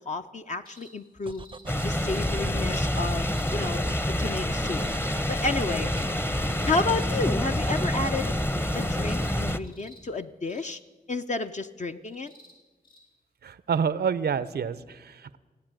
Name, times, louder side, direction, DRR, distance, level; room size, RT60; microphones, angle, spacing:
voice 1, 0.1-1.5 1.8-3.9 4.2-4.8 5.1-5.9 6.7-8.3 8.7-10.8 11.1-12.3, left 3 dB, 45° left, 6 dB, 0.6 m, -31 dB
sound 1, 0.6-0.9 1.2-1.6 2.0-2.3 3.1-3.5 4.5-5.0 5.6-6.1 6.4-6.7 7.4-7.8 8.1-8.5 9.0-9.3 9.6-10.0 10.5-10.8 12.0-12.5 12.8-13.0 14.1-14.2, equal, 65° left, 4.3 m, -54 dB
sound 2, 1.3-9.6, right 4 dB, 30° right, 0.5 m, -43 dB
sound 3, 1.7-9.6, left 1 dB, 15° left, 0.7 m, -27 dB
voice 2, 13.4-15.4, right 6 dB, 85° right, 16 dB, 0.6 m, -28 dB
16.5 x 9.7 x 8.9 m, 1.3 s
cardioid pair, 50°, 16 cm